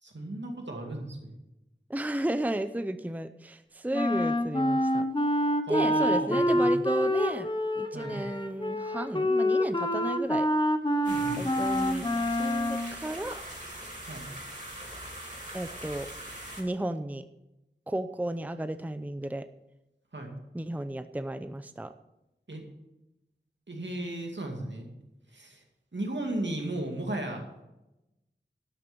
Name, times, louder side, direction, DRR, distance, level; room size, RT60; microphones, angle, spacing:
voice 1, 0.0-1.3 5.7-6.7 7.9-8.2 11.1-11.4 14.0-14.3 20.1-20.3 22.5-22.6 23.7-24.9 25.3-25.6 25.9-27.4, right 1 dB, 75° right, 2 dB, 2.3 m, -35 dB
voice 2, 1.9-5.1 5.7-10.5 11.4-13.4 15.5-16.1 16.6-17.2 17.9-19.5 20.5-21.9, right 1 dB, 10° right, 10 dB, 0.5 m, -33 dB
Wind instrument woodwind instrument, 3.9-12.9, left 1 dB, 25° left, 1.0 m, -27 dB
sound 1, 11.0-16.6, right 1 dB, 40° right, 3.4 m, -42 dB
12.0 x 6.6 x 6.9 m, 0.94 s
wide cardioid pair, 45°, 19 cm